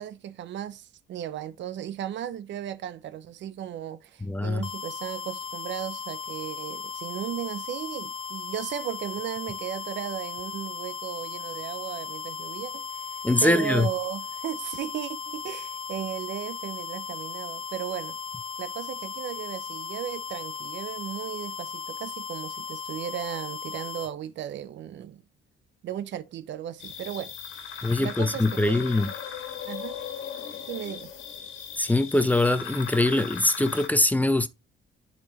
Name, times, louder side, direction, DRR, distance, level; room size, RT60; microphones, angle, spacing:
voice 1, 0.0-18.2 18.6-25.2 25.8-27.3 28.0-28.8 29.6-30.0 30.7-31.1, right 10 dB, 65° right, 0.6 m, -36 dB
voice 2, 4.2-4.6 13.2-13.9 27.8-29.1 31.8-34.5, left 2 dB, 10° left, 0.5 m, -23 dB
sound 1, 4.6-24.1, left 6 dB, 25° left, 1.2 m, -37 dB
sound 2, 26.8-33.9, left 7 dB, 90° left, 1.5 m, -38 dB
10.0 x 4.1 x 3.0 m
cardioid pair, 90°, 20 cm